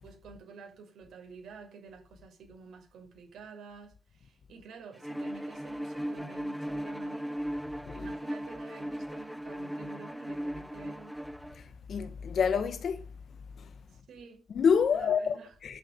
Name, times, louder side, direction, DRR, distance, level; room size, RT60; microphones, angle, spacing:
voice 1, 0.0-7.4 7.9-11.2 13.9-14.4 14.9-15.5, right 5 dB, 70° right, 7.0 m, -50 dB
Bowed string instrument, 5.0-11.6, equal, ahead, 0.5 m, -37 dB
voice 2, 11.6-13.0 13.6-13.7 14.5-15.4 15.6-15.8, left 6 dB, 55° left, 1.8 m, -27 dB
11.5 x 7.6 x 7.2 m
cardioid pair, 90°, 0 cm